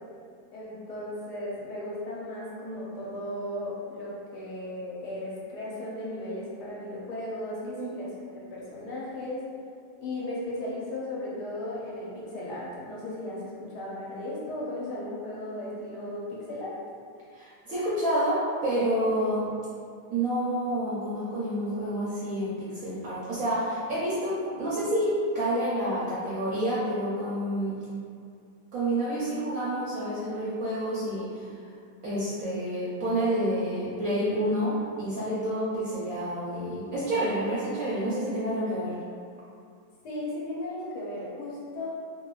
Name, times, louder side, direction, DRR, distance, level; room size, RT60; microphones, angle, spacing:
voice 1, 0.5-8.1 8.5-9.4 10.0-16.8 40.0-41.9, left 1 dB, 70° left, -6 dB, 1.2 m, -36 dB
voice 2, 17.3-18.4 18.6-19.4 20.1-27.8 28.7-31.5 32.0-39.0, right 1 dB, 65° right, -9 dB, 0.9 m, -29 dB
2.9 x 2.9 x 2.3 m, 2.3 s
omnidirectional pair, 1.9 m